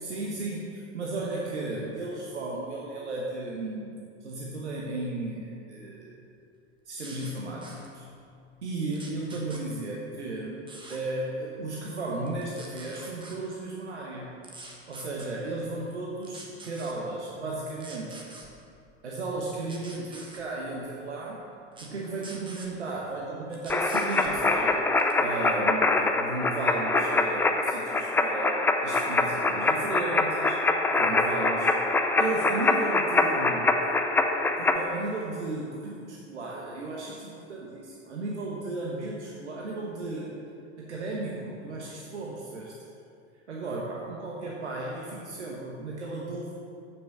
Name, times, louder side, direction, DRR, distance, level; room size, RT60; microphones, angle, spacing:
voice 1, 0.0-6.2 6.9-8.0 8.6-14.3 14.9-18.3 19.0-21.4 21.8-24.8 25.2-30.6 31.0-31.7 32.0-33.8 34.6-40.4 40.8-42.7 43.5-46.5, right 2 dB, 75° right, -3 dB, 1.2 m, -35 dB
sound 1, 7.0-7.3 7.6-7.9 8.9-9.6 10.7-11.0 12.3-13.4 14.4-15.3 16.2-16.9 17.8-18.5 19.7-20.4 21.7-21.9 22.2-22.7 23.5-24.3 25.0-25.2, right 2 dB, 15° right, 1.4 m, -45 dB
sound 2, 23.7-34.8, left 3 dB, 5° left, 0.4 m, -24 dB
7.8 x 6.3 x 6.8 m, 2.5 s
figure-of-eight pair, 80°, 35 cm